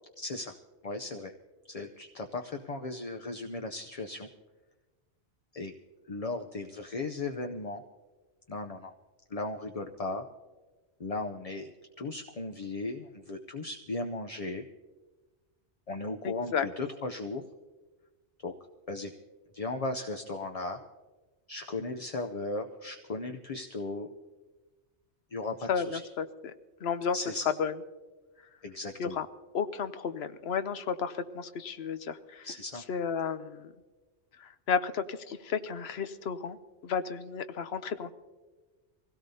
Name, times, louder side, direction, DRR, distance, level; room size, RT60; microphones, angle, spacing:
voice 1, 0.2-0.5 0.8-1.3 1.7-4.3 5.5-5.7 6.1-7.8 8.5-8.9 9.3-10.3 11.0-14.7 15.9-17.4 18.4-18.5 18.9-19.1 19.5-20.8 21.5-24.1 25.3-26.0 27.1-27.4 28.6-29.2 32.4-32.8, left 2 dB, 40° left, 4 dB, 0.6 m, -36 dB
voice 2, 16.2-16.7 25.7-26.5 26.8-27.2 27.6-27.7 29.0-29.3 29.5-32.5 32.8-33.7 34.4-36.6 36.8-38.1, left 6 dB, 65° left, 11 dB, 0.9 m, -33 dB
24.5 x 17.0 x 2.8 m, 1.3 s
omnidirectional pair, 1.2 m